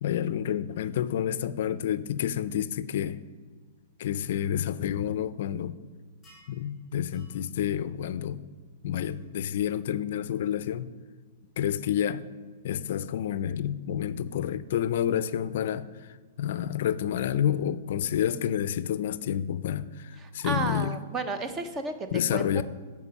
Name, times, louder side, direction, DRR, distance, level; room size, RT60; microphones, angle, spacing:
voice 1, 0.0-3.2 4.0-5.8 6.5-8.4 8.8-10.9 11.6-12.2 12.6-21.0 22.1-22.6, left 10 dB, 55° left, 15 dB, 0.4 m, -29 dB
sound 1, 6.2-6.6 7.1-7.4 9.0-9.1, equal, 5° left, 2.4 m, -56 dB
voice 2, 20.2-22.6, right 3 dB, 15° right, 8 dB, 0.6 m, -33 dB
9.7 x 4.8 x 7.0 m, 1.4 s
hypercardioid pair, 165°, 0 cm